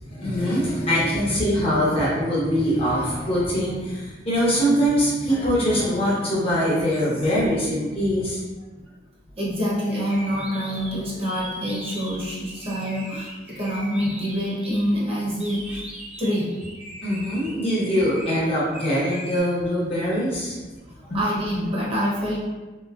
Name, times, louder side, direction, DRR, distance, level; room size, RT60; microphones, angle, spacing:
voice 1, 0.0-8.4 17.0-20.6 21.1-21.2, equal, 35° left, -6 dB, 0.9 m, -23 dB
voice 2, 9.4-15.8 16.2-16.5 20.9-22.4, equal, 35° right, -6 dB, 0.9 m, -26 dB
sound 1, 9.9-14.8 15.4-18.4 18.7-19.4, right 1 dB, 5° right, 0.6 m, -39 dB
3.0 x 2.9 x 2.4 m, 1.2 s
head